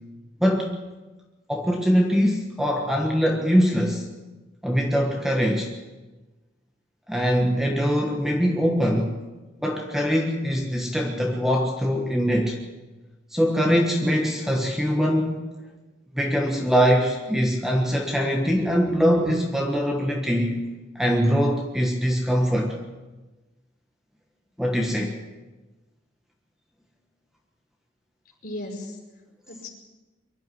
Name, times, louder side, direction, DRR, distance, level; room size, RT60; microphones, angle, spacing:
voice 1, 0.4-0.8 1.5-4.0 4.6-5.7 7.1-9.2 9.6-12.6 13.3-15.5 16.1-20.6 20.9-22.8 24.6-25.2, equal, ahead, 1 dB, 1.4 m, -22 dB
voice 2, 28.4-29.7, left 1 dB, 50° left, 0 dB, 5.2 m, -37 dB
23.5 x 12.0 x 9.3 m, 1.2 s
head